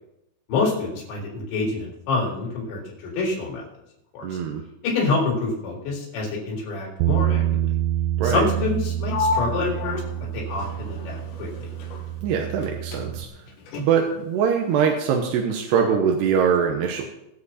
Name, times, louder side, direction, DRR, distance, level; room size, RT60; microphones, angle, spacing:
voice 1, 0.5-3.6 4.1-4.4 4.8-7.4 8.2-10.0 10.3-11.7, left 3 dB, 65° left, -3 dB, 5.8 m, -27 dB
voice 2, 4.2-4.6 8.2-8.4 12.2-13.3 13.8-17.0, right 7 dB, 70° right, 2 dB, 2.7 m, -22 dB
Bass guitar, 7.0-13.3, right 13 dB, 85° right, 2.5 m, -27 dB
Sliding door, 9.1-12.7 12.9-14.2, left 4 dB, 80° left, 4.6 m, -32 dB
22.0 x 7.7 x 4.2 m, 0.85 s
omnidirectional pair, 5.7 m